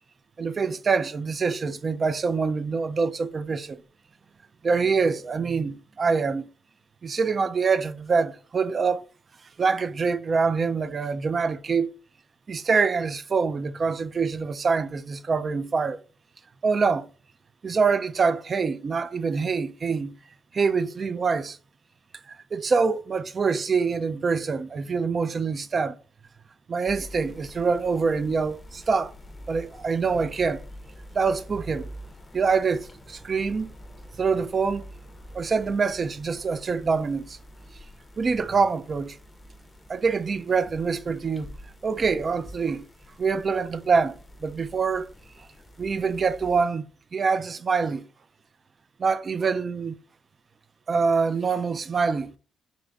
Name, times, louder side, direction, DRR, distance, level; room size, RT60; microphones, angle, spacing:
voice 1, 0.4-3.8 4.6-6.5 7.0-9.0 9.6-11.9 12.5-16.0 16.6-17.1 17.6-20.1 20.5-21.6 22.3-26.0 26.7-29.1 29.5-30.6 31.1-31.9 32.3-33.7 34.2-34.8 35.3-37.4 38.2-39.2 39.9-41.5 41.8-42.8 43.2-45.1 45.8-46.9 47.1-48.0 49.0-49.9 50.9-52.4, right 5 dB, 40° right, 0.4 m, -25 dB
sound 1, 26.9-46.6, equal, 25° left, 0.6 m, -46 dB
4.0 x 2.5 x 3.3 m
cardioid pair, 90°, 0 cm